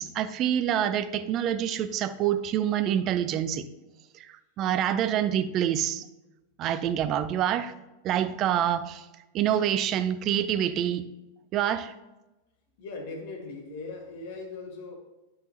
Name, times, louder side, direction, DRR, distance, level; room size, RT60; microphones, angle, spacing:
voice 1, 0.0-3.7 4.1-6.1 6.6-7.7 8.0-9.1 9.3-11.1 11.5-11.9, right 10 dB, 35° right, 12 dB, 0.5 m, -26 dB
voice 2, 12.8-15.0, left 3 dB, 50° left, 2 dB, 1.7 m, -39 dB
10.5 x 6.4 x 2.8 m, 1.0 s
figure-of-eight pair, 90°, 0 cm